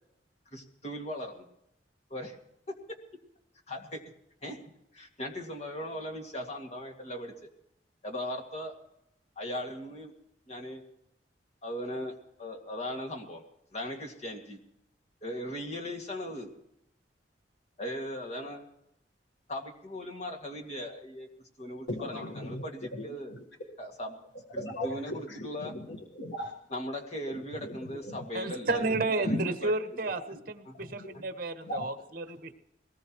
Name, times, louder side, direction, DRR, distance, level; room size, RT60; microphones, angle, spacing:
voice 1, 0.5-1.4 2.1-2.4 3.7-4.0 4.4-4.6 4.9-7.3 8.0-8.7 9.4-10.1 10.5-10.8 11.6-12.1 12.4-13.4 13.7-14.6 15.2-16.5 17.8-18.6 19.5-21.3 21.6-23.3 23.8-24.2 24.5-25.8 26.7-29.7 30.7-30.8 31.1-31.2, equal, 40° left, 1 dB, 2.3 m, -38 dB
voice 2, 21.9-22.6 22.9-23.0 23.3-23.4 24.5-26.5 27.3-28.2 28.9-29.5 30.8-31.1 31.6-31.8, equal, 90° left, 2 dB, 1.7 m, -37 dB
voice 3, 28.3-32.5, right 2 dB, 55° right, 7 dB, 1.3 m, -32 dB
21.5 x 19.0 x 3.1 m, 0.81 s
head